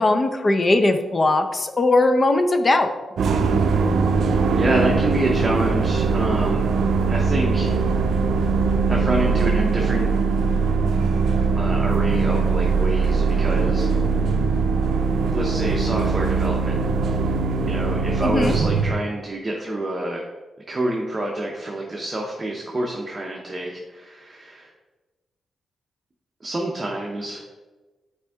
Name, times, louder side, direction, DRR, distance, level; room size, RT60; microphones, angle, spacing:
voice 1, 0.0-2.9 18.2-18.6, left 2 dB, 30° left, 8 dB, 0.6 m, -19 dB
sound 1, 3.2-18.9, right 4 dB, 70° right, 0.5 m, -21 dB
voice 2, 4.5-6.7 7.1-7.7 8.9-10.1 11.6-13.9 15.3-16.8 17.7-20.2 20.7-24.7 26.4-27.4, right 1 dB, 25° right, -1 dB, 0.8 m, -27 dB
7.4 x 4.4 x 3.5 m, 1.2 s
cardioid pair, 110°, 0 cm